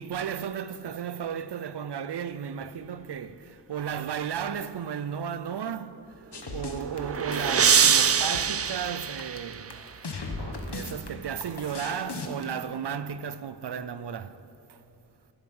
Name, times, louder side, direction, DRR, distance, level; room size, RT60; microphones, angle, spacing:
voice 1, 0.0-9.8 10.7-14.8, right 8 dB, 85° right, 0.5 m, -34 dB
sound 1, 6.3-12.4, left 3 dB, 85° left, 1.2 m, -37 dB
sound 2, 6.5-9.9, right 7 dB, 40° right, 0.4 m, -24 dB
19.5 x 8.0 x 5.4 m
wide cardioid pair, 65°, 39 cm